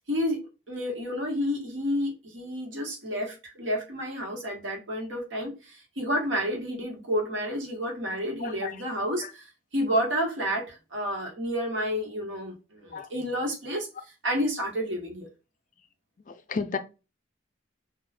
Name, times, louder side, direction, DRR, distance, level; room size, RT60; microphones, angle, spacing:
voice 1, 0.7-13.9 14.2-15.3, equal, 75° right, 1.2 m, -30 dB
voice 2, 8.4-8.8 9.2-9.3 12.9-13.1 16.3-16.8, left 5 dB, 40° left, 0.3 m, -33 dB
2.4 x 2.3 x 4.0 m
head